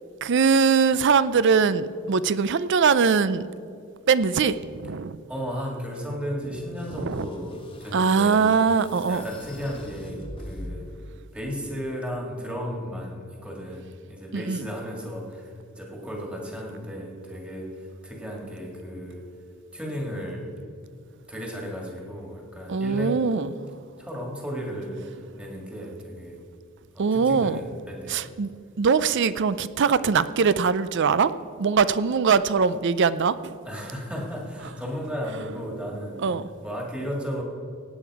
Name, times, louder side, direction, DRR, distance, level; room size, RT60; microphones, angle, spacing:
voice 1, 0.2-3.5 4.1-5.2 6.9-7.3 7.9-9.3 14.3-14.6 22.7-23.5 27.0-27.6 28.1-28.5 28.8-31.3 31.6-33.5 36.2-36.5, right 5 dB, 55° right, 15 dB, 0.5 m, -22 dB
voice 2, 5.3-8.4 8.9-10.9 11.3-19.3 19.7-20.5 21.3-23.2 24.0-26.4 27.0-28.2 33.6-36.2 36.6-37.4, equal, 5° right, 0 dB, 2.0 m, -34 dB
sound 1, 6.7-11.1, left 1 dB, 25° left, 1.3 m, -42 dB
17.0 x 9.1 x 4.8 m, 2.5 s
head